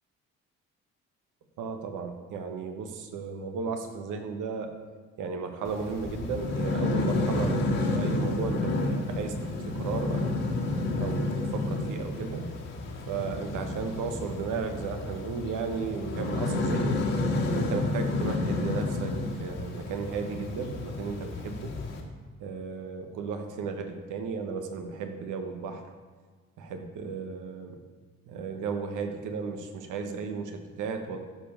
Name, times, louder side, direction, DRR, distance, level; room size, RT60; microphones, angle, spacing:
voice 1, 1.6-4.7 5.2-7.6 7.9-10.5 11.0-12.5 13.1-17.0 17.5-21.7 22.4-25.8 26.6-27.8 28.3-31.2, right 5 dB, 85° right, 5 dB, 1.2 m, -34 dB
sound 1, 5.7-22.0, left 2 dB, 60° left, 1.9 m, -30 dB
12.5 x 5.0 x 5.6 m, 1.5 s
cardioid pair, 90°, 30 cm